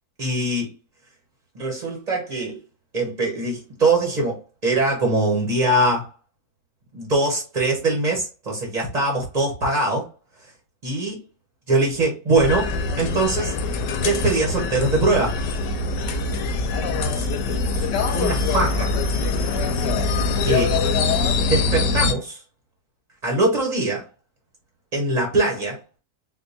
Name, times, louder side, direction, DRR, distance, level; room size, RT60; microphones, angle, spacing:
voice 1, 0.2-0.7 1.5-2.6 2.9-6.1 6.9-10.1 10.4-10.5 10.8-11.2 11.7-13.6 14.0-15.4 16.2-16.4 16.9-17.9 18.1-19.0 20.4-20.8 21.5-22.4 23.2-24.1 24.9-25.8, right 2 dB, 35° right, 0.7 m, -22 dB
sound 1, 12.3-22.1, left 4 dB, 85° left, 1.2 m, -23 dB
4.5 x 2.3 x 2.6 m
omnidirectional pair, 1.8 m